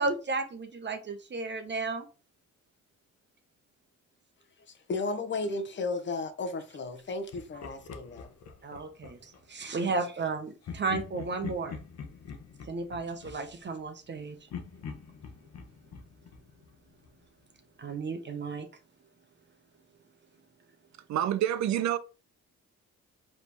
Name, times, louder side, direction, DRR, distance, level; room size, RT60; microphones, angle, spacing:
voice 1, 0.0-2.1 8.6-11.8 12.7-14.4 17.8-18.7, right 3 dB, 35° right, 0.9 m, -33 dB
voice 2, 4.7-8.3, left 3 dB, 40° left, 0.9 m, -34 dB
Laughter, 7.3-9.4 10.6-14.1 14.5-17.3, left 6 dB, 60° left, 1.0 m, -44 dB
voice 3, 21.1-22.0, right 11 dB, 65° right, 0.6 m, -27 dB
4.9 x 3.2 x 3.4 m
cardioid pair, 90°, 30 cm